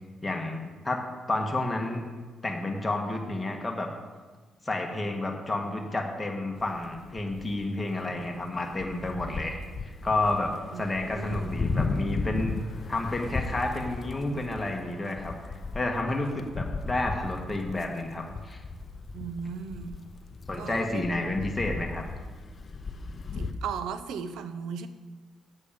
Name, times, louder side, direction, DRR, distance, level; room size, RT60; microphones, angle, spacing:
voice 1, 0.2-1.0 1.3-2.0 2.4-3.9 4.7-12.6 12.9-18.6 20.5-22.0, left 2 dB, 20° left, 1 dB, 1.6 m, -30 dB
sound 1, 6.6-7.8 8.1-23.5, left 3 dB, 35° left, 0.7 m, -36 dB
voice 2, 11.1-11.5 19.1-20.0 20.6-21.1 23.4-24.9, right 6 dB, 85° right, 11 dB, 0.7 m, -36 dB
8.5 x 8.3 x 5.2 m, 1.3 s
cardioid pair, 90°, 0 cm